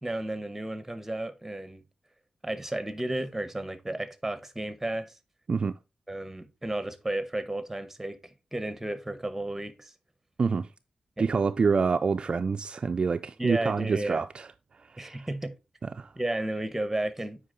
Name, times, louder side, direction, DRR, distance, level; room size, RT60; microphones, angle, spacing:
voice 1, 0.0-1.8 2.4-5.1 6.1-9.9 11.2-11.3 13.4-14.2 15.0-15.5 16.2-17.4, right 1 dB, 10° right, 0.9 m, -33 dB
voice 2, 11.2-14.5 14.9-15.3 16.0-16.1, right 5 dB, 45° right, 0.3 m, -27 dB
8.2 x 5.0 x 3.8 m
wide cardioid pair, 145°, 2 cm